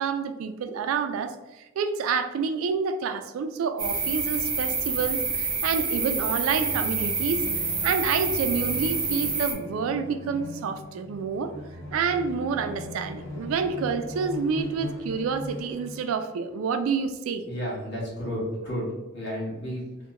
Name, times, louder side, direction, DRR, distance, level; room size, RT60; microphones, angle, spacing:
voice 1, 0.0-7.5 7.8-11.5 11.9-17.4, right 5 dB, 70° right, 0.3 m, -28 dB
sound 1, 3.8-9.5, right 4 dB, 25° right, 0.5 m, -28 dB
sound 2, 6.5-14.0, left 2 dB, 85° left, 0.7 m, -41 dB
sound 3, 9.8-16.3, left 1 dB, 15° left, 0.8 m, -42 dB
voice 2, 17.5-18.9 19.1-19.9, equal, 55° left, 1.3 m, -32 dB
2.8 x 2.1 x 3.5 m
head